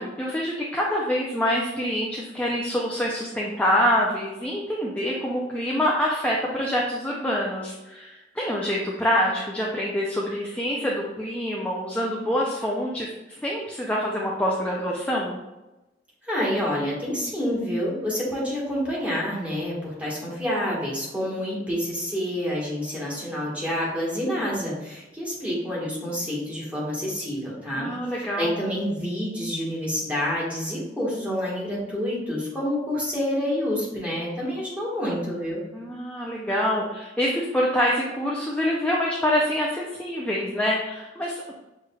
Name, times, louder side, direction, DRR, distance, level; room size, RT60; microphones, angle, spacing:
voice 1, 0.0-15.4 27.8-28.6 35.7-41.6, equal, 10° left, -4 dB, 0.4 m, -26 dB
voice 2, 16.2-27.9 28.4-35.6, equal, 10° right, -6 dB, 1.4 m, -28 dB
6.4 x 3.2 x 2.3 m, 1.0 s
head